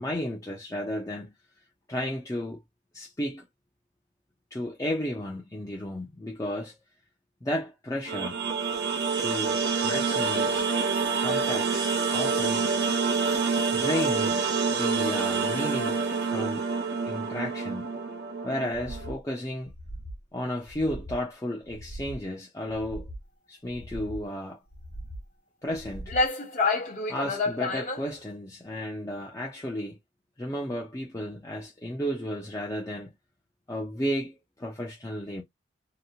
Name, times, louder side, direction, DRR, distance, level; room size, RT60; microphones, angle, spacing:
voice 1, 0.0-1.3 1.9-2.6 2.9-3.5 4.5-6.7 7.4-8.4 9.1-10.7 11.2-12.6 13.7-14.4 14.7-16.7 17.0-17.8 18.4-19.7 20.3-23.1 23.5-24.6 25.6-26.1 27.1-30.0 30.4-33.1 33.7-35.4, left 1 dB, 20° left, 0.5 m, -33 dB
sound 1, 8.1-19.1, right 5 dB, 65° right, 0.9 m, -27 dB
sound 2, 18.7-19.2 19.6-20.2 20.6-21.2 21.6-22.2 22.6-23.2 23.7-24.3 24.7-25.3 25.7-26.3, right 1 dB, 70° left, 1.1 m, -41 dB
sound 3, 25.7-25.8 26.1-28.1, left 3 dB, 45° left, 0.9 m, -27 dB
2.8 x 2.2 x 2.7 m
head